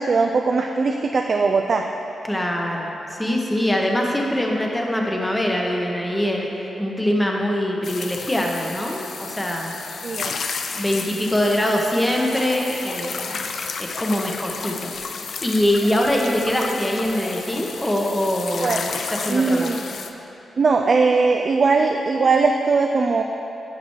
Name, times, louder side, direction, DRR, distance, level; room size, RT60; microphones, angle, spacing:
voice 1, 0.0-1.9 10.0-10.3 18.6-18.8 19.3-19.8 20.6-23.2, right 4 dB, 55° right, 3 dB, 0.3 m, -19 dB
voice 2, 2.2-9.7 10.7-13.5 13.8-19.8, left 1 dB, 10° left, 0 dB, 1.0 m, -23 dB
sound 1, 7.8-20.1, left 5 dB, 70° left, 0.4 m, -32 dB
9.6 x 6.0 x 3.2 m, 2.9 s
cardioid pair, 75°, 0 cm